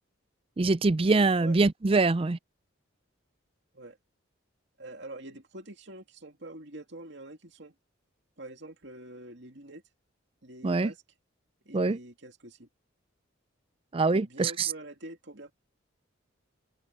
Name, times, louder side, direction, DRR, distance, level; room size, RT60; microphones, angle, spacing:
voice 1, 0.6-2.4 10.6-10.9 11.7-12.0 13.9-14.7, right 3 dB, 25° right, 0.4 m, -24 dB
voice 2, 4.8-7.7 8.4-9.8 10.4-11.0 11.6-12.7 14.1-15.5, right 1 dB, 60° right, 2.7 m, -45 dB
head